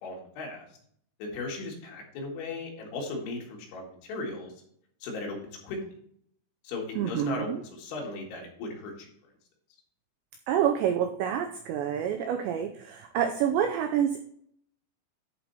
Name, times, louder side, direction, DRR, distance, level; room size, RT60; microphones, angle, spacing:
voice 1, 0.0-0.7 1.2-4.5 5.0-5.8 6.6-9.1, left 3 dB, 70° left, -1 dB, 4.3 m, -37 dB
voice 2, 7.0-7.6 10.5-14.2, right 9 dB, 90° right, 5 dB, 2.5 m, -27 dB
11.0 x 4.6 x 4.2 m, 0.66 s
omnidirectional pair, 5.9 m